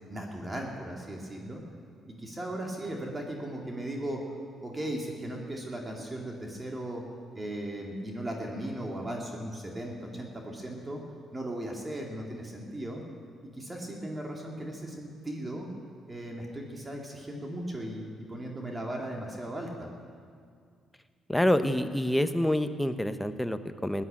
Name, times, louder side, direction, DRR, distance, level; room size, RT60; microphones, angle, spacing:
voice 1, 0.1-1.6 2.1-4.2 4.6-7.0 7.3-11.0 11.3-13.0 13.5-15.7 16.1-19.9, right 1 dB, 20° right, 0 dB, 2.4 m, -37 dB
voice 2, 21.3-24.0, left 1 dB, 5° left, 9 dB, 0.8 m, -27 dB
16.0 x 9.8 x 8.8 m, 2.1 s
cardioid pair, 90°, 0 cm